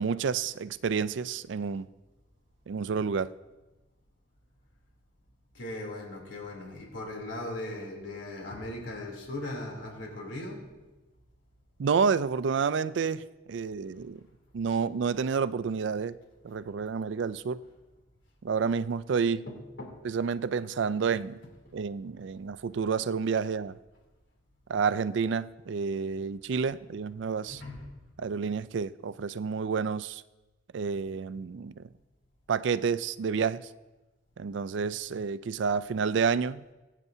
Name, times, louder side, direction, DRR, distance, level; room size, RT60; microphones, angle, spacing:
voice 1, 0.0-1.9 2.7-3.3 11.8-14.2 14.5-16.2 16.4-17.6 18.4-19.4 20.0-21.4 21.7-23.7 24.7-27.6 28.2-30.2 30.7-31.9 32.5-33.7 34.4-36.6, right 5 dB, 70° right, 0.4 m, -29 dB
voice 2, 5.5-10.6 16.5-16.6 19.5-19.9 21.6-21.7 27.5-27.9, left 1 dB, 80° left, 3.2 m, -38 dB
22.0 x 9.1 x 2.8 m
head